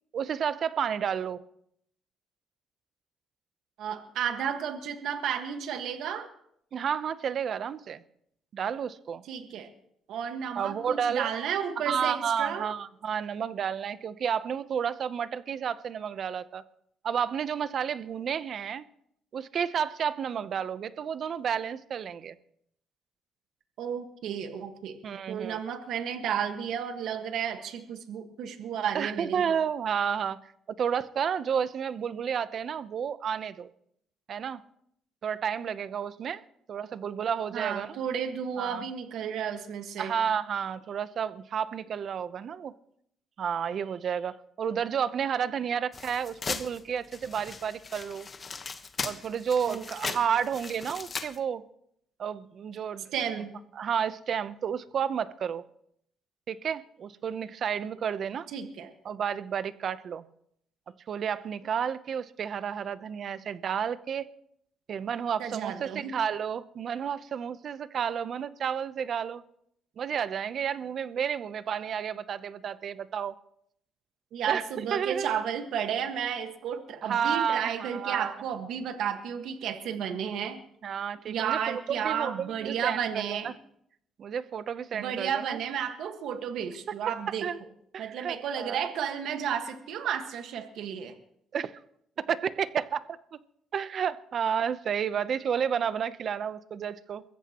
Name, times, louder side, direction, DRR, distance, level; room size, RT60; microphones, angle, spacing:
voice 1, 0.1-1.4 6.7-8.0 8.5-9.2 10.6-11.3 11.9-16.6 17.0-18.8 19.3-22.3 25.0-25.6 28.9-30.4 30.8-33.7 34.3-34.6 35.2-36.4 36.7-38.0 38.6-38.8 40.0-42.7 43.4-48.3 49.0-51.6 52.2-53.1 53.8-55.6 56.5-58.5 59.0-60.3 61.1-64.3 64.9-69.4 70.0-73.3 74.5-74.6 74.9-75.4 77.0-78.3 80.8-83.5 84.2-85.6 87.4-87.6 87.9-88.9 91.5-91.7 92.2-93.4 93.7-97.2, right 7 dB, 50° right, 0.8 m, -31 dB
voice 2, 3.8-6.3 9.3-9.7 10.1-12.7 23.8-25.0 25.3-29.4 37.5-40.1 49.7-50.2 53.1-53.5 58.5-58.9 65.4-66.1 74.3-80.6 81.3-83.5 84.9-87.5 88.0-91.2, right 8 dB, 75° right, 1.6 m, -32 dB
sound 1, 45.9-51.4, left 4 dB, 35° left, 1.2 m, -38 dB
23.0 x 14.5 x 3.0 m
cardioid pair, 105°, 0 cm